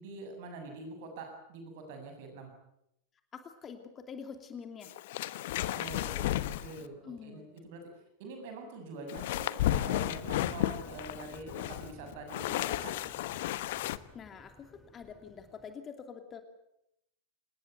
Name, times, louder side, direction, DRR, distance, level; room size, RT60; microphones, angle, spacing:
voice 1, 0.0-2.5 5.7-13.0, right 3 dB, 50° right, 5 dB, 7.4 m, -45 dB
voice 2, 3.3-4.9 7.0-7.7 14.1-16.4, left 6 dB, 25° left, 7 dB, 2.8 m, -46 dB
sound 1, 4.8-6.9 9.1-14.0, left 14 dB, 55° left, 1.0 m, -33 dB
sound 2, 9.7-15.7, left 2 dB, 10° left, 2.7 m, -54 dB
27.0 x 20.0 x 8.2 m, 0.81 s
figure-of-eight pair, 90°, 0 cm